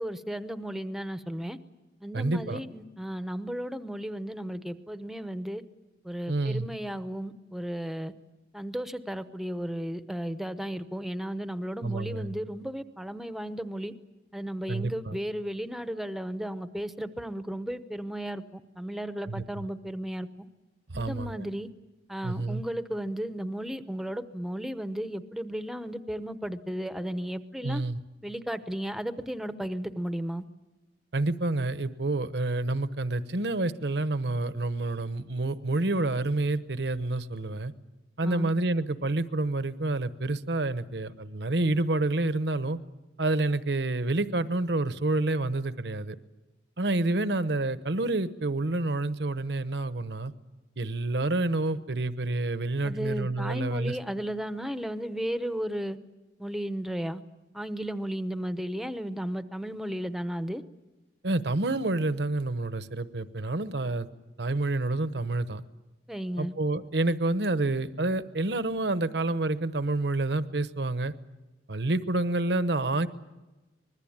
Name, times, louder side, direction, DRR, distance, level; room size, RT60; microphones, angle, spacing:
voice 1, 0.0-1.6 2.0-5.6 6.0-8.1 8.5-13.9 14.3-18.4 18.8-20.3 20.9-21.7 22.1-27.8 28.2-30.4 38.2-38.5 52.8-56.0 56.4-57.2 57.5-60.6 66.1-66.5, equal, ahead, 11 dB, 0.9 m, -34 dB
voice 2, 2.1-2.6 6.3-6.7 11.8-12.4 14.7-15.2 19.3-19.7 20.9-21.4 22.2-22.6 27.6-28.0 31.1-37.7 38.2-42.8 43.2-46.2 46.8-50.3 50.8-54.0 61.2-64.1 64.4-65.6 66.4-71.1 71.7-73.1, right 2 dB, 70° right, 13 dB, 1.0 m, -28 dB
25.0 x 21.0 x 8.8 m, 1.1 s
head